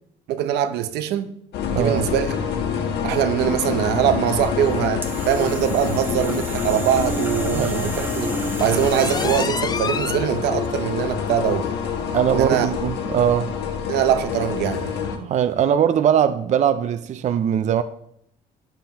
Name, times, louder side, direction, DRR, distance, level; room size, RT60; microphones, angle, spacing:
voice 1, 0.3-1.3 1.7-2.3 3.0-11.7 12.3-12.7 13.9-14.9, right 10 dB, 85° right, 0.8 m, -22 dB
sound 1, 1.5-15.2, left 7 dB, 80° left, 1.3 m, -27 dB
voice 2, 1.7-2.1 7.5-7.9 12.1-13.5 15.1-17.8, right 9 dB, 45° right, 0.5 m, -21 dB
sound 2, 4.3-9.7, right 2 dB, 10° right, 1.2 m, -32 dB
sound 3, 8.6-10.3 10.7-10.8 11.3-11.4 11.8-11.9 12.8-12.9, left 5 dB, 25° left, 0.4 m, -29 dB
11.5 x 7.1 x 3.0 m
cardioid pair, 110°, 17 cm